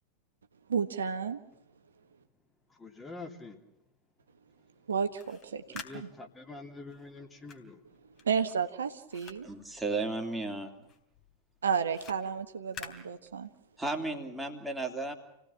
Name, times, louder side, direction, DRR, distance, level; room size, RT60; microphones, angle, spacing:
voice 1, 0.7-1.4 4.9-6.1 8.2-9.5 11.6-13.5, right 6 dB, 70° right, 7 dB, 1.4 m, -32 dB
voice 2, 2.7-3.6 5.8-7.8, left 3 dB, 10° left, 3 dB, 3.0 m, -45 dB
sound 1, 5.0-10.5 10.8-13.8, left 6 dB, 30° left, 3.4 m, -50 dB
voice 3, 9.4-10.9 13.8-15.2, right 2 dB, 5° right, 3 dB, 3.2 m, -34 dB
28.5 x 18.0 x 7.3 m, 0.87 s
figure-of-eight pair, 90°, 0 cm